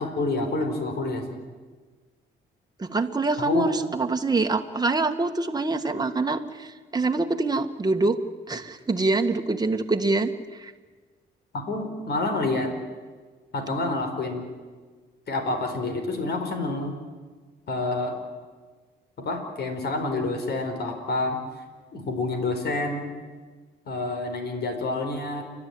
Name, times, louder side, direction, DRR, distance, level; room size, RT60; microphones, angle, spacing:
voice 1, 0.0-1.4 3.4-3.7 11.5-12.7 13.5-14.5 15.3-17.0 17.7-18.2 19.2-21.4 21.9-23.1 23.9-25.4, left 2 dB, 55° left, 5 dB, 4.6 m, -28 dB
voice 2, 2.8-8.2 8.5-10.7, right 3 dB, 20° right, 5 dB, 1.8 m, -25 dB
29.5 x 12.5 x 9.5 m, 1.4 s
cardioid pair, 90°, 20 cm